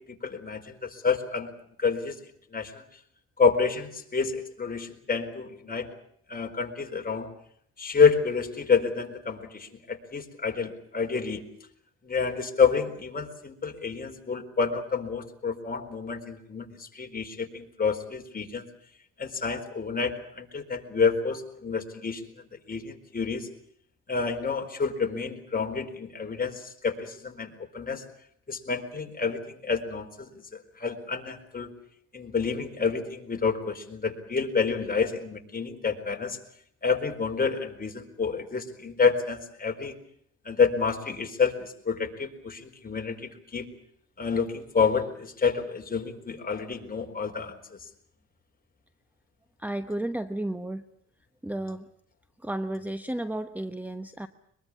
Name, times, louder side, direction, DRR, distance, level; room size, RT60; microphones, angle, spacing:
voice 1, 0.2-1.5 1.8-2.2 2.5-2.8 3.4-5.9 6.3-7.3 7.8-11.5 12.0-18.7 19.2-22.2 22.7-23.5 24.1-28.0 28.5-30.1 30.5-31.7 32.1-36.4 36.8-39.9 40.4-43.7 44.2-47.5, left 5 dB, 30° left, 4 dB, 4.4 m, -28 dB
voice 2, 49.6-50.8 51.4-51.9 52.4-54.3, right 1 dB, 5° right, 10 dB, 1.1 m, -32 dB
23.5 x 22.0 x 8.4 m, 0.68 s
cardioid pair, 90°, 30 cm